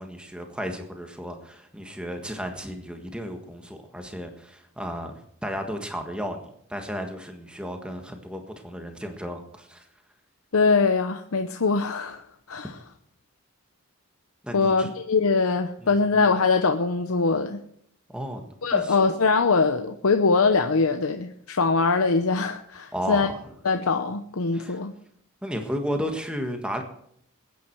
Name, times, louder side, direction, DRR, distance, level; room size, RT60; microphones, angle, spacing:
voice 1, 0.0-6.4 6.7-9.8 14.4-14.9 15.8-15.9 18.1-18.4 18.7-18.9 22.9-23.4 24.5-24.8 25.4-26.8, equal, 5° right, 1.5 m, -33 dB
voice 2, 10.5-12.2 12.5-12.7 14.5-17.6 18.6-23.3 23.6-24.9, left 4 dB, 85° left, 0.8 m, -22 dB
21.5 x 9.4 x 4.6 m
head